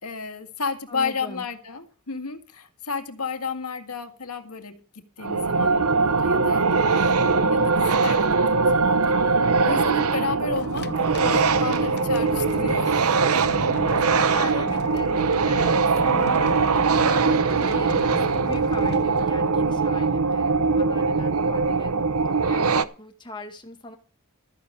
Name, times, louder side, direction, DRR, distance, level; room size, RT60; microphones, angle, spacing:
voice 1, 0.0-9.4 9.6-10.9 11.2-13.6, left 4 dB, 90° left, 8 dB, 1.9 m, -33 dB
voice 2, 0.9-1.4 13.9-16.5 16.9-24.0, left 2 dB, 20° left, 5 dB, 1.9 m, -39 dB
sound 1, 5.2-22.8, right 4 dB, 80° right, 0.8 m, -21 dB
sound 2, 10.6-20.0, left 3 dB, 50° left, 0.6 m, -36 dB
13.5 x 9.8 x 5.1 m, 0.38 s
head